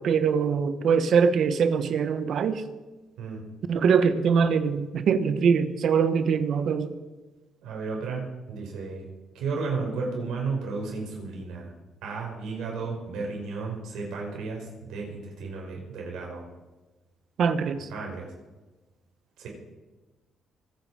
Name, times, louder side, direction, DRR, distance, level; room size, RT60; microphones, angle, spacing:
voice 1, 0.0-2.6 3.7-6.9 17.4-17.9, right 6 dB, 65° right, 11 dB, 1.3 m, -23 dB
voice 2, 7.6-9.1 9.3-11.7 12.0-16.4 17.9-18.3 19.4-19.5, right 4 dB, 85° right, 0 dB, 5.4 m, -33 dB
25.0 x 9.3 x 5.1 m, 1.2 s
cardioid pair, 90°, 0 cm